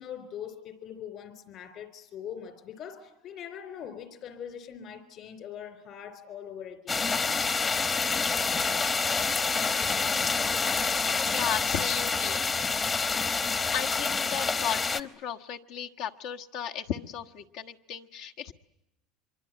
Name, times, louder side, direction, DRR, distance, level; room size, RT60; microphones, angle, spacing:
voice 1, 0.0-7.4, left 8 dB, 50° left, 11 dB, 3.8 m, -42 dB
sound 1, 6.9-15.0, left 4 dB, 25° left, 1.1 m, -27 dB
voice 2, 11.3-12.5 13.7-18.5, left 9 dB, 70° left, 4 dB, 1.4 m, -35 dB
25.0 x 23.5 x 9.0 m, 0.90 s
supercardioid pair, 125°, 0 cm